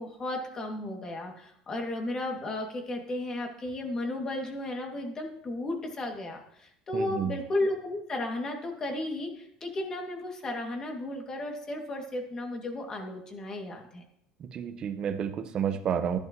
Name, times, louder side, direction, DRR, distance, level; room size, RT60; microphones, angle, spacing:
voice 1, 0.0-14.0, left 1 dB, 30° left, 2 dB, 2.4 m, -34 dB
voice 2, 6.9-7.4 14.4-16.2, right 8 dB, 45° right, 8 dB, 1.1 m, -30 dB
12.0 x 11.0 x 3.1 m, 0.71 s
supercardioid pair, 105°, 2 cm